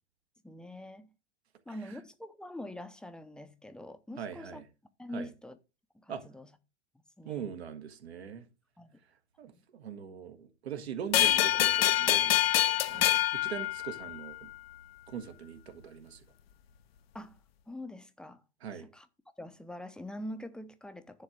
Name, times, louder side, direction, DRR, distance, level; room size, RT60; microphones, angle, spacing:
voice 1, 0.4-1.1 1.7-4.6 5.0-5.6 5.9-6.5 7.2-7.5 8.8-9.0 9.5-9.6 12.9-13.1 17.1-17.4 17.7-18.4 18.7-19.1 19.4-21.2, left 1 dB, ahead, 0.7 m, -44 dB
voice 2, 4.2-4.6 5.1-5.3 6.1-6.2 7.2-8.5 9.4-14.5 15.1-16.2 18.6-18.9, right 8 dB, 65° right, 1.5 m, -42 dB
sound 1, 11.1-14.4, left 13 dB, 60° left, 0.7 m, -26 dB
10.5 x 3.7 x 6.5 m
figure-of-eight pair, 95°, 34 cm